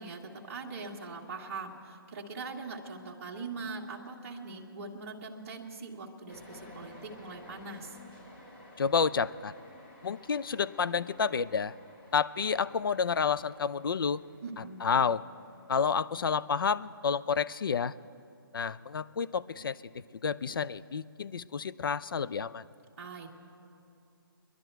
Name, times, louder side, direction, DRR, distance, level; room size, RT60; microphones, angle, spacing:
voice 1, 0.0-8.0 14.4-14.9 23.0-23.3, right 4 dB, 40° right, -1 dB, 1.3 m, -42 dB
sound 1, 6.3-16.6, left 1 dB, 30° left, 2.5 m, -54 dB
voice 2, 8.8-9.5 10.0-11.7 12.1-14.2 14.8-15.2 15.7-17.9 18.5-19.8 20.2-22.6, left 6 dB, 70° left, 17 dB, 0.4 m, -29 dB
21.5 x 11.0 x 4.6 m, 2.5 s
hypercardioid pair, 165°, 12 cm